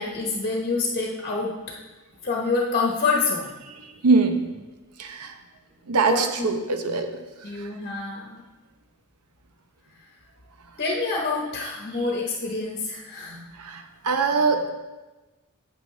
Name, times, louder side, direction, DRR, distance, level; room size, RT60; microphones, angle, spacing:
voice 1, 0.0-1.5 2.2-3.5 6.0-6.6 7.4-8.4 10.8-13.4, left 3 dB, 40° left, -2 dB, 1.0 m, -27 dB
voice 2, 4.0-4.4 5.0-5.3 5.9-7.1 13.6-14.7, right 4 dB, 85° right, 6 dB, 0.8 m, -22 dB
8.9 x 8.1 x 3.3 m, 1.2 s
head